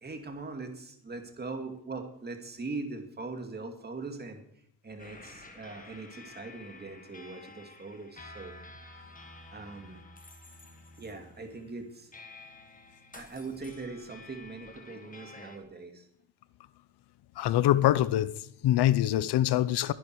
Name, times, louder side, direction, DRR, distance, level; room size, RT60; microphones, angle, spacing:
voice 1, 0.0-4.4 4.8-8.5 9.5-10.0 11.0-12.1 13.1-16.1, right 3 dB, 25° right, 2.3 m, -41 dB
sound 1, 5.0-15.6, left 2 dB, 20° left, 1.9 m, -51 dB
voice 2, 17.4-19.9, left 13 dB, 80° left, 0.8 m, -24 dB
22.0 x 10.5 x 4.7 m
cardioid pair, 155°, 39 cm